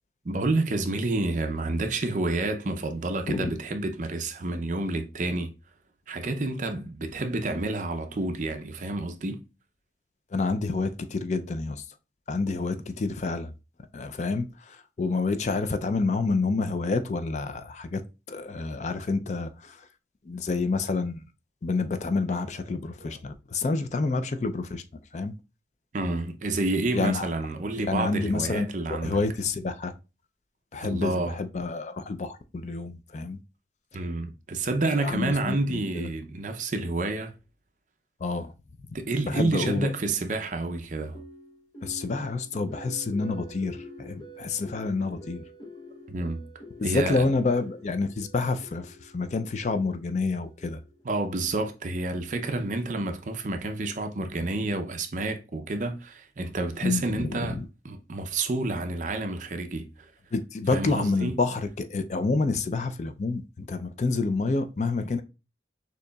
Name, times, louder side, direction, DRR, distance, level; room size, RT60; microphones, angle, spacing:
voice 1, 0.2-5.5 6.1-9.4 23.0-23.2 25.9-29.2 30.8-31.4 33.9-37.3 38.9-41.2 46.1-46.4 46.8-47.3 51.0-57.6 57.8-59.9 60.7-61.4, right 2 dB, 45° right, 0.5 m, -29 dB
voice 2, 10.3-11.8 12.3-13.5 13.9-18.0 18.3-19.8 20.3-21.2 21.6-24.8 25.1-25.3 26.9-27.3 27.8-29.9 30.7-33.4 34.8-36.1 38.2-38.5 39.3-39.9 41.8-45.4 46.8-50.8 56.8-57.6 60.3-65.2, left 3 dB, 40° left, 0.4 m, -28 dB
sound 1, 41.1-51.2, equal, 25° left, 0.8 m, -47 dB
6.5 x 2.9 x 2.3 m
head